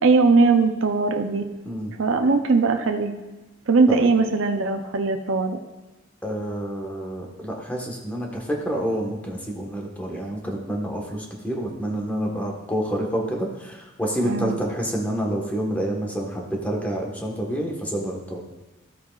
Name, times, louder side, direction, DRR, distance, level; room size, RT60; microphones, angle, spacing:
voice 1, 0.0-1.4 2.0-3.1 3.7-5.6 14.2-14.6, right 4 dB, 75° right, 5 dB, 0.6 m, -20 dB
voice 2, 6.2-18.4, equal, 10° left, -1 dB, 1.3 m, -28 dB
13.0 x 8.4 x 2.4 m, 1.1 s
head